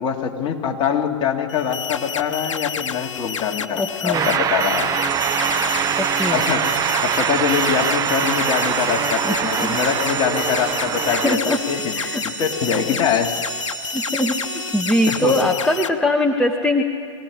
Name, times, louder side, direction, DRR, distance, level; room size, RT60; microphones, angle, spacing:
voice 1, 0.0-4.9 6.3-13.3 15.1-15.4, left 7 dB, 30° left, 1 dB, 2.5 m, -24 dB
sound 1, 1.5-15.9, left 7 dB, 70° left, 1.1 m, -30 dB
voice 2, 3.7-4.3 6.0-6.5 9.2-9.3 9.6-9.8 11.1-11.6 11.9-12.2 13.9-16.8, left 1 dB, 5° left, 2 dB, 1.2 m, -21 dB
sound 2, 4.1-11.4, right 9 dB, 20° right, 0.8 m, -23 dB
sound 3, 5.1-15.4, right 3 dB, 80° right, 3.7 m, -33 dB
23.5 x 17.5 x 9.8 m, 2.2 s
hypercardioid pair, 110°, 16 cm